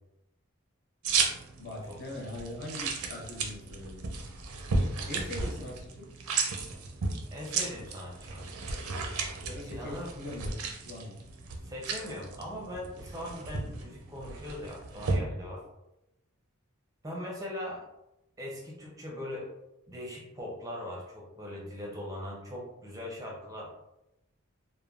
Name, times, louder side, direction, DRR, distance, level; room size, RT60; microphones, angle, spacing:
sound 1, 1.0-15.2, right 4 dB, 80° right, 0.5 m, -34 dB
voice 1, 1.6-4.1 5.0-6.1 9.4-10.6 10.8-11.2, left 1 dB, 50° left, -1 dB, 0.6 m, -41 dB
voice 2, 7.3-8.5 9.7-10.1 11.6-15.6 17.0-17.8 18.4-19.5 19.9-23.7, left 1 dB, 15° right, -2 dB, 0.5 m, -40 dB
3.2 x 2.1 x 2.3 m, 0.91 s
head